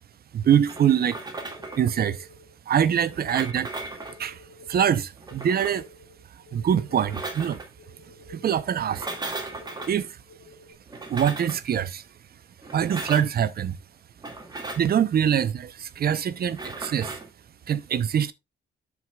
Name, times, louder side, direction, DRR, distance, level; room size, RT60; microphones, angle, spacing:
voice 1, 0.3-1.3 1.8-2.3 2.7-3.8 4.2-5.9 6.5-7.6 8.3-9.2 9.9-10.2 11.1-12.1 12.7-13.8 14.5-17.2 17.7-18.3, right 9 dB, 50° right, 0.7 m, -24 dB
sound 1, 0.7-10.7, left 2 dB, 80° left, 1.9 m, -51 dB
sound 2, 0.7-1.9 3.1-4.2 5.2-5.8 6.9-7.7 8.8-9.9 10.9-11.6 12.6-13.3 14.2-14.9 16.5-17.3, right 2 dB, 20° right, 2.2 m, -37 dB
13.0 x 4.9 x 2.3 m
cardioid pair, 90°, 20 cm